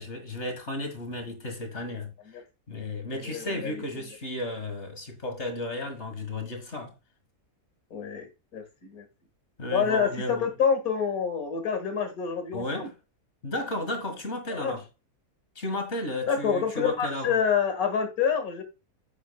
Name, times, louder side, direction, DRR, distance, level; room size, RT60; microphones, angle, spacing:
voice 1, 0.0-2.1 2.7-6.9 9.6-10.5 12.5-12.9 13.4-14.8 15.6-17.4, left 1 dB, 45° left, 1.9 m, -34 dB
voice 2, 3.1-3.8 7.9-8.3 8.5-9.1 9.7-12.9 14.5-14.8 16.3-18.6, left 7 dB, 65° left, 2.2 m, -27 dB
8.8 x 7.1 x 2.2 m
omnidirectional pair, 1.7 m